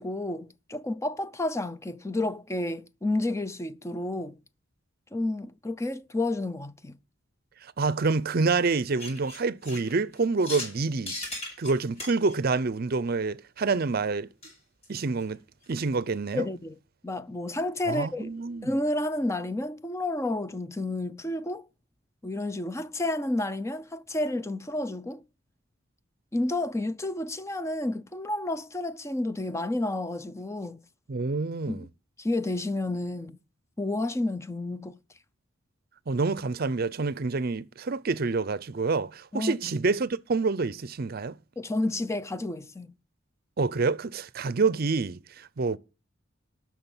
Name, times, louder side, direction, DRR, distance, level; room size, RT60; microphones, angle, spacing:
voice 1, 0.0-4.4 5.1-7.0 16.3-16.8 17.0-18.3 18.6-21.7 22.2-25.2 26.3-30.8 31.7-31.9 32.2-33.4 33.8-35.0 39.3-39.5 41.6-43.0, left 2 dB, 15° left, 0.5 m, -30 dB
voice 2, 7.6-11.2 11.6-14.3 14.9-15.4 15.7-16.5 17.9-18.7 31.1-31.9 36.1-41.4 43.6-45.8, right 4 dB, 50° right, 0.6 m, -27 dB
sound 1, 9.0-10.8 11.1-12.3 14.4-14.5 14.8-14.9 15.2-15.3 15.6-15.7, left 2 dB, 35° left, 7.2 m, -38 dB
13.0 x 6.3 x 7.0 m
head